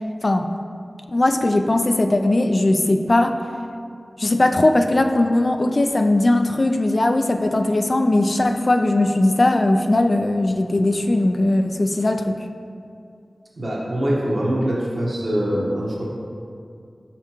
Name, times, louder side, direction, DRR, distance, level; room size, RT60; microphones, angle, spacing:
voice 1, 1.1-3.4 4.2-12.4, left 2 dB, 50° left, 6 dB, 0.3 m, -19 dB
voice 2, 13.6-16.0, equal, 65° right, -4 dB, 1.2 m, -23 dB
5.8 x 5.6 x 2.9 m, 2.4 s
wide cardioid pair, 70°, 0 cm